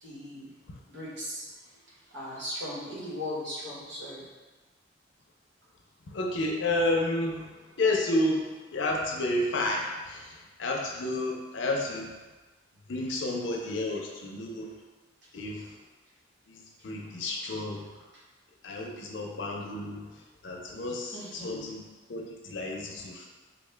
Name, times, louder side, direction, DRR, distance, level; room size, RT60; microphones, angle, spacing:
voice 1, 0.0-0.5 0.9-1.4 2.1-4.2 21.1-21.6, left 1 dB, 75° right, -7 dB, 1.3 m, -38 dB
voice 2, 6.1-12.1 12.9-14.7 15.3-15.7 16.5-17.9 18.6-23.3, left 2 dB, 75° left, 0 dB, 0.6 m, -31 dB
4.1 x 2.2 x 3.3 m, 1.2 s
head